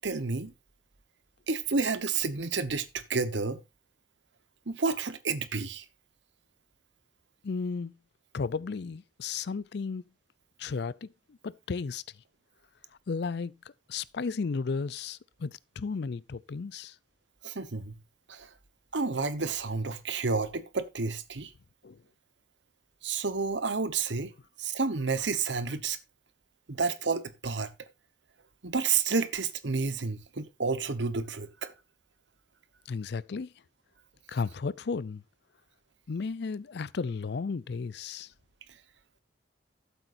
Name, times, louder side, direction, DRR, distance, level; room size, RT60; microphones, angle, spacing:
voice 1, 0.0-0.5 1.5-3.6 4.7-5.8 17.4-18.0 18.3-18.5 18.9-21.5 23.0-24.3 24.6-26.0 26.7-27.9 28.6-31.7, right 4 dB, 70° right, 1.1 m, -30 dB
voice 2, 7.4-8.0 8.3-10.0 10.6-12.0 13.1-13.6 13.9-16.9 21.8-22.0 32.9-33.5 34.3-35.2 36.1-38.3, left 4 dB, 60° left, 0.5 m, -34 dB
13.5 x 8.0 x 2.6 m
head